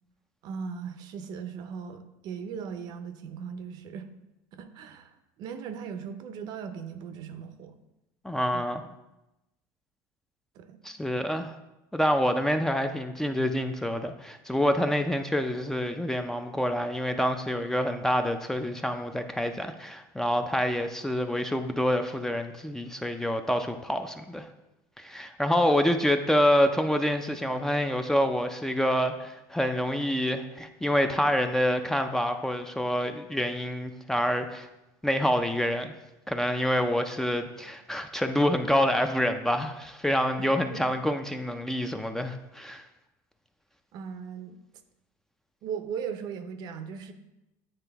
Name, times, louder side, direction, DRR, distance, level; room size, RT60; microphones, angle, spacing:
voice 1, 0.4-4.1 4.5-5.1 5.4-7.7 8.5-8.7 10.6-10.8 40.7-40.8 43.9-44.6 45.6-47.1, right 7 dB, 60° right, 9 dB, 0.6 m, -38 dB
voice 2, 8.2-8.8 10.8-11.5 11.9-24.5 25.0-34.7 35.0-35.9 36.3-42.8, equal, 5° left, 7 dB, 0.4 m, -27 dB
8.9 x 3.3 x 3.4 m, 0.96 s
supercardioid pair, 105°, 8 cm